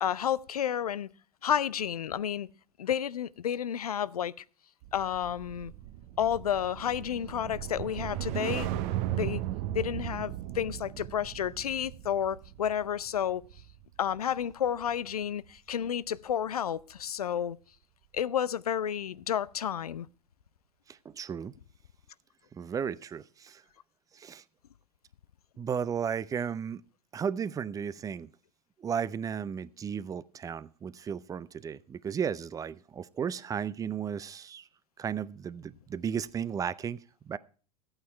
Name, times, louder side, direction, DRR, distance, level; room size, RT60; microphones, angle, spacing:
voice 1, 0.0-1.1 1.4-2.5 2.8-4.3 4.9-5.7 6.2-8.8 9.1-9.4 9.7-13.4 14.0-17.6 18.1-20.1, left 9 dB, 75° left, 0.5 m, -31 dB
sound 1, 4.8-15.2 15.6-15.9, right 13 dB, 45° right, 0.9 m, -37 dB
voice 2, 20.9-21.5 22.5-23.6 24.1-24.4 25.6-26.8 27.1-28.3 28.8-34.7 35.0-37.4, right 7 dB, 15° right, 0.5 m, -34 dB
14.0 x 8.9 x 4.5 m
figure-of-eight pair, 85°, 20 cm